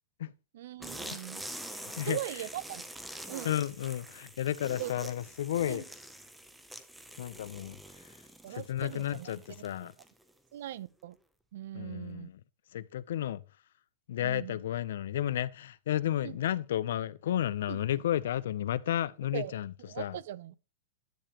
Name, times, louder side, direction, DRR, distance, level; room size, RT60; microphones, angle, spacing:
voice 1, 0.5-1.4 2.0-2.8 3.3-3.5 4.8-5.1 5.7-5.8 8.4-9.3 10.5-11.2 11.5-12.3 14.2-14.6 16.2-16.4 17.7-17.8 19.3-19.5 19.9-20.6, right 13 dB, 60° right, 0.5 m, -40 dB
sound 1, 0.8-10.3, right 1 dB, 5° right, 0.6 m, -46 dB
voice 2, 1.7-2.2 3.4-5.8 7.2-7.8 8.5-9.9 11.7-12.4 12.7-13.4 14.1-20.2, left 11 dB, 70° left, 0.5 m, -32 dB
10.0 x 6.9 x 2.9 m
supercardioid pair, 165°, 0 cm